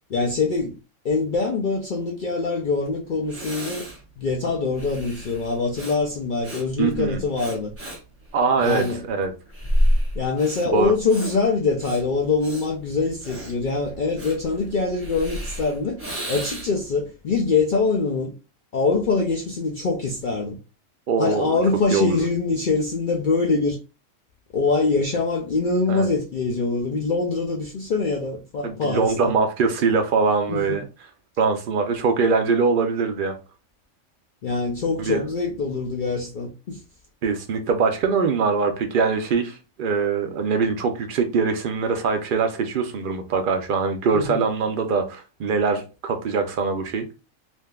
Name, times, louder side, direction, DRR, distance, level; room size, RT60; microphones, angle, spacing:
voice 1, 0.1-0.7 1.0-3.8 4.2-7.7 8.6-9.0 10.1-16.0 16.3-18.3 18.7-20.6 21.2-23.8 24.5-29.4 30.5-30.8 34.4-36.8 44.1-44.4, left 4 dB, 70° left, 0.4 m, -24 dB
Breathing, 2.8-2.9 3.3-16.9, equal, 10° right, 1.1 m, -30 dB
voice 2, 6.8-7.2 8.3-9.3 10.7-10.9 21.1-21.6 21.9-22.2 25.9-26.1 28.6-30.9 31.4-33.4 35.0-35.2 37.2-47.1, right 5 dB, 80° right, 0.4 m, -22 dB
3.4 x 2.6 x 2.2 m
omnidirectional pair, 1.4 m